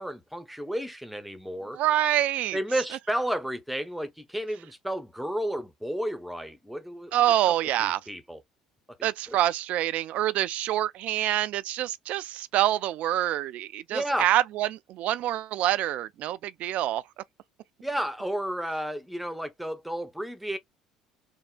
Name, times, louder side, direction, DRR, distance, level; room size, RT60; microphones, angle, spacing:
voice 1, 0.0-1.8 2.5-7.1 7.8-8.4 9.3-9.4 13.9-14.3 17.8-20.6, right 1 dB, ahead, 0.7 m, -32 dB
voice 2, 1.7-2.6 7.1-8.0 9.0-17.0, right 13 dB, 50° right, 0.3 m, -26 dB
3.5 x 2.1 x 2.2 m
figure-of-eight pair, 60°, 3 cm